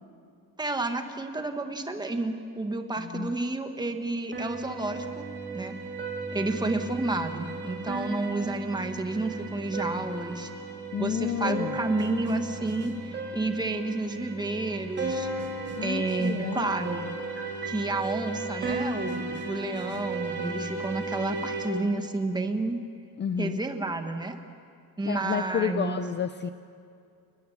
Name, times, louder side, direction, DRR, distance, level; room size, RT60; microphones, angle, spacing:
voice 1, 0.6-5.2 5.5-5.7 6.3-10.5 11.0-15.3 15.8-17.0 17.6-22.8 23.4-24.4 25.0-26.0, right 2 dB, 10° right, 6 dB, 1.4 m, -30 dB
voice 2, 3.0-3.3 10.9-11.8 15.8-16.7 23.2-23.6 25.0-26.5, left 8 dB, 30° left, 10 dB, 0.6 m, -30 dB
sound 1, 4.3-21.7, right 3 dB, 30° right, 3.3 m, -35 dB
30.0 x 20.0 x 7.2 m, 2.4 s
cardioid pair, 165°, 37 cm